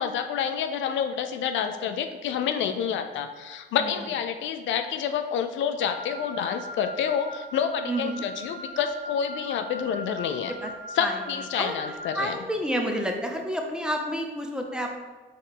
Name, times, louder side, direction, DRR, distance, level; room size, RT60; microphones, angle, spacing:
voice 1, 0.0-10.5 11.0-12.4, left 8 dB, 75° left, 7 dB, 0.4 m, -28 dB
Wind instrument woodwind instrument, 5.8-12.2, equal, 80° right, 0.6 m, -40 dB
voice 2, 7.9-8.2 10.6-10.7 11.0-11.2 11.5-14.9, equal, 5° right, 2 dB, 0.6 m, -30 dB
4.4 x 3.1 x 3.7 m, 1.3 s
cardioid pair, 90°, 20 cm